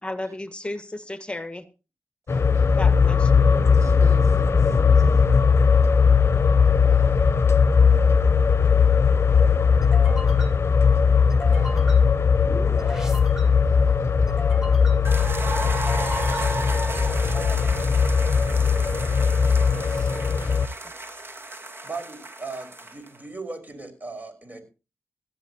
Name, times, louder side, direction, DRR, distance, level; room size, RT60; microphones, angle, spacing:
voice 1, 0.0-1.7 2.7-3.5 21.0-21.2, left 1 dB, 20° left, 9 dB, 1.7 m, -34 dB
sound 1, 2.3-20.7, left 6 dB, 55° left, 0.8 m, -19 dB
voice 2, 2.3-2.8 3.7-5.2 6.8-7.4 11.4-11.9 13.5-15.1 19.8-20.1, right 3 dB, 80° right, 7 dB, 5.4 m, -50 dB
sound 2, 9.8-20.2, left 1 dB, 10° right, 5.0 m, -39 dB
sound 3, 15.0-23.2, right 2 dB, 50° right, 2.7 m, -34 dB
voice 3, 21.8-24.6, right 3 dB, 30° right, 8 dB, 5.7 m, -37 dB
18.5 x 13.5 x 3.0 m, 0.32 s
cardioid pair, 50°, 5 cm